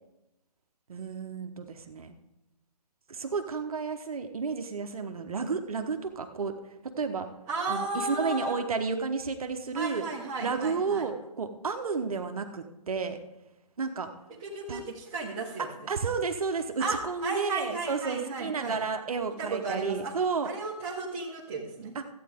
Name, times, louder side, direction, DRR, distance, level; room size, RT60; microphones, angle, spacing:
voice 1, 0.9-2.2 3.1-6.5 7.0-7.3 7.7-10.0 10.4-13.2 13.8-14.1 14.7-14.8 15.9-20.5 21.9-22.1, right 5 dB, 60° right, 6 dB, 1.0 m, -31 dB
voice 2, 7.5-8.6 9.7-11.1 14.4-15.9 16.8-18.8 19.4-20.1 20.4-21.9, right 3 dB, 20° right, -8 dB, 1.3 m, -34 dB
14.0 x 8.6 x 3.6 m, 0.95 s
hypercardioid pair, 155°, 21 cm